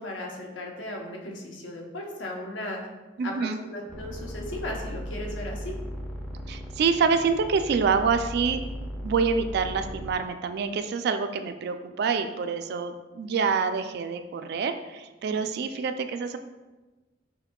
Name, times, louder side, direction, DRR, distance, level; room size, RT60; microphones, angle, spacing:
voice 1, 0.0-2.8 3.2-5.8, left 1 dB, 80° left, 0 dB, 0.8 m, -36 dB
voice 2, 3.2-3.6 6.5-8.6 9.0-16.4, right 5 dB, 55° right, 8 dB, 0.3 m, -26 dB
sound 1, 3.9-10.2, equal, 10° left, 0.4 m, -37 dB
5.7 x 3.6 x 2.2 m, 1.2 s
head